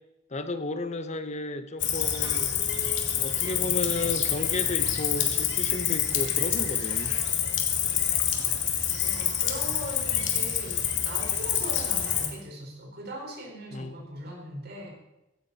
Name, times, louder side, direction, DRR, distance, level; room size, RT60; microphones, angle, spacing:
voice 1, 0.3-2.5 3.1-7.2 13.7-14.0, left 2 dB, 40° left, 10 dB, 1.0 m, -33 dB
Cricket, 1.8-12.3, left 9 dB, 70° left, 2.4 m, -27 dB
sound 1, 3.0-3.1 3.8-3.9 5.2-5.3 6.1-6.2 6.5-6.6 7.6-7.7 8.3-8.4 9.5-9.6 10.3-10.4, left 9 dB, 90° left, 2.4 m, -33 dB
voice 2, 9.0-14.9, equal, 55° right, -1 dB, 5.0 m, -40 dB
16.5 x 15.0 x 4.2 m, 0.94 s
head